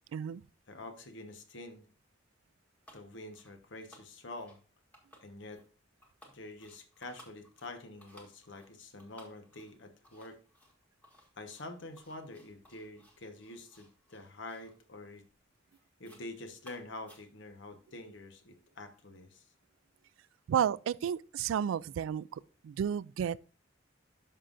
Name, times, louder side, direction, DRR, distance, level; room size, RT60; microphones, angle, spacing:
voice 1, 0.1-0.4 20.5-23.5, right 8 dB, 85° right, 0.3 m, -32 dB
voice 2, 0.7-1.8 2.9-4.6 5.2-5.6 6.3-10.4 11.4-15.3 16.0-19.5, left 2 dB, 65° left, 1.1 m, -47 dB
sound 1, 2.9-3.1 3.3-3.6 3.9-4.6 4.9-5.7 6.0-14.8 15.1-15.4 15.7-16.3 16.6-17.6, equal, 10° left, 1.7 m, -60 dB
12.0 x 5.6 x 2.5 m
head